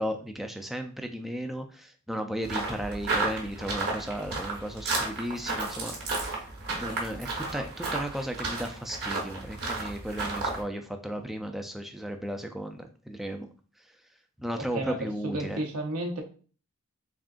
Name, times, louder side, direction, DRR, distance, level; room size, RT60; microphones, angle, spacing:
voice 1, 0.0-6.4 6.7-13.5 14.4-15.6, equal, ahead, 5 dB, 0.3 m, -35 dB
sound 1, 2.4-10.6, right 3 dB, 50° right, 1.1 m, -33 dB
voice 2, 14.5-16.2, right 1 dB, 75° right, 2 dB, 0.8 m, -33 dB
3.6 x 3.5 x 2.4 m, 0.39 s
head